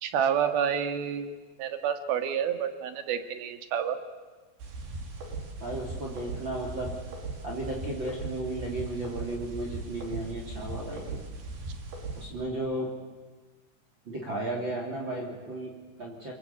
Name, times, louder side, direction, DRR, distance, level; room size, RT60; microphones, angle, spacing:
voice 1, 0.0-1.3 1.6-4.0, right 8 dB, 65° right, 7 dB, 3.5 m, -29 dB
sound 1, 4.6-12.3, right 3 dB, 85° right, 6.0 m, -39 dB
voice 2, 5.6-6.9 7.4-11.2 12.2-12.9 14.0-16.3, right 1 dB, 30° right, 0 dB, 3.5 m, -34 dB
29.0 x 23.0 x 8.5 m, 1.3 s
omnidirectional pair, 5.0 m